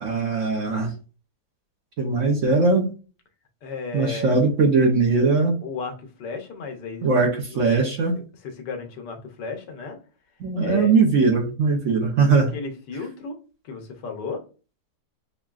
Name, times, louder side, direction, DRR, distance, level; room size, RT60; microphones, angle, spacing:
voice 1, 0.0-0.9 2.0-2.9 3.9-5.5 7.0-8.1 10.4-12.6, right 4 dB, 60° right, 0 dB, 0.9 m, -20 dB
voice 2, 3.6-4.4 5.6-7.1 7.5-7.8 8.6-10.0 10.6-10.9 12.5-13.4 13.6-14.4, left 4 dB, 80° left, 5 dB, 1.4 m, -34 dB
6.3 x 2.2 x 2.3 m, 0.35 s
omnidirectional pair, 1.8 m